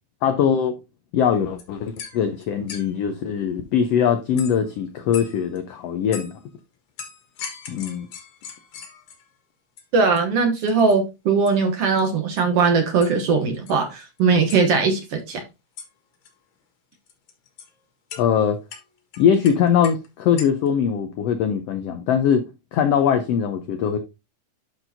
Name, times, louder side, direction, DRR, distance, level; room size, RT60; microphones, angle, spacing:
voice 1, 0.2-0.8 1.1-6.3 7.7-8.1 18.2-18.6 19.2-22.4 22.7-24.0, left 8 dB, 90° left, 1.4 m, -21 dB
sound 1, 1.3-1.4 1.6-3.0 4.4-4.7 5.1-5.6 6.1-6.4 7.0-9.3 9.8-9.9 10.2-10.3 10.6-11.0 11.5-11.6 11.8-12.1 12.4-12.6 13.0-13.2 13.5-14.2 14.5-14.6 15.8-15.9 16.1-16.3 16.9-17.7 18.1-18.2 18.7-20.1 20.4-20.7, left 7 dB, 70° left, 2.9 m, -39 dB
voice 2, 9.9-15.4, right 4 dB, 65° right, 1.6 m, -20 dB
11.5 x 4.5 x 2.7 m
omnidirectional pair, 3.7 m